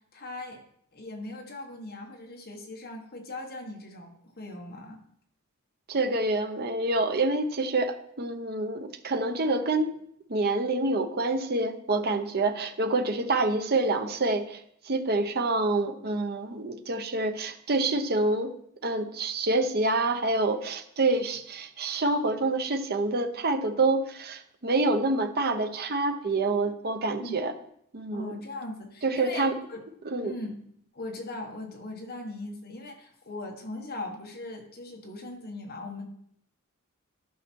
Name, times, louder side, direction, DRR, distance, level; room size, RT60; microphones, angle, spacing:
voice 1, 0.1-0.6 0.9-5.0 13.1-13.2 27.2-27.3 28.1-29.8 30.2-30.6 30.9-36.1, left 2 dB, 45° left, 2 dB, 1.5 m, -39 dB
voice 2, 5.9-9.9 10.3-14.6 14.9-18.5 18.8-27.5 27.9-28.3 29.0-29.5 30.0-30.3, right 2 dB, 45° right, 7 dB, 0.8 m, -27 dB
12.0 x 5.7 x 4.6 m, 0.70 s
head